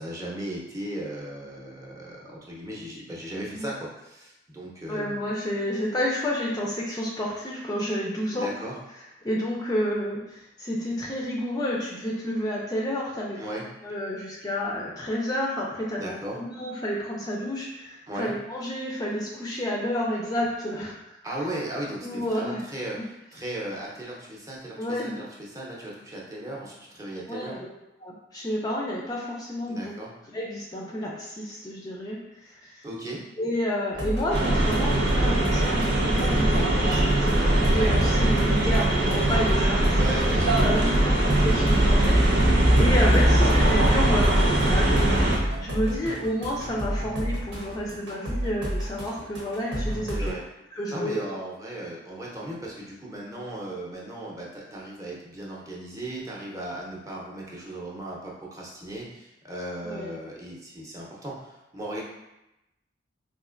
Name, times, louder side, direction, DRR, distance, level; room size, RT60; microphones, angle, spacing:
voice 1, 0.0-5.2 8.3-8.8 13.4-13.7 15.9-16.4 18.1-18.3 21.2-27.6 29.7-30.1 32.8-33.2 39.9-41.4 50.1-50.4 50.9-62.0, right 1 dB, 20° right, -4 dB, 0.6 m, -36 dB
voice 2, 4.9-8.5 9.2-13.4 13.8-21.2 22.0-22.6 23.0-23.1 24.8-25.2 27.3-27.7 28.0-29.9 30.3-32.8 33.4-40.2 40.6-50.4 50.7-51.2 59.8-60.1, equal, 20° left, -3 dB, 0.4 m, -30 dB
sound 1, 33.9-50.3, equal, 80° right, 1.0 m, -32 dB
sound 2, 34.3-45.4, right 1 dB, 65° right, 0.6 m, -21 dB
4.1 x 2.5 x 2.5 m, 0.92 s
head